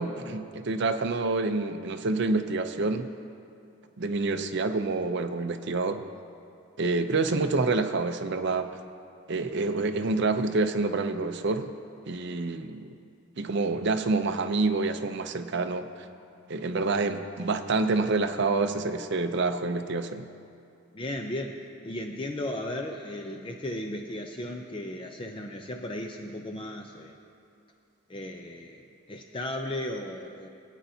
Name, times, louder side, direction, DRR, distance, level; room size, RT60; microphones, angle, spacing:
voice 1, 0.0-3.1 4.0-6.0 6.8-8.7 9.3-11.7 12.1-12.9 13.4-15.9 16.5-20.3, right 3 dB, 55° right, 7 dB, 0.5 m, -27 dB
voice 2, 20.9-27.2 28.1-28.8 29.1-30.5, left 1 dB, 25° left, 2 dB, 0.5 m, -35 dB
23.0 x 9.0 x 2.8 m, 2.5 s
head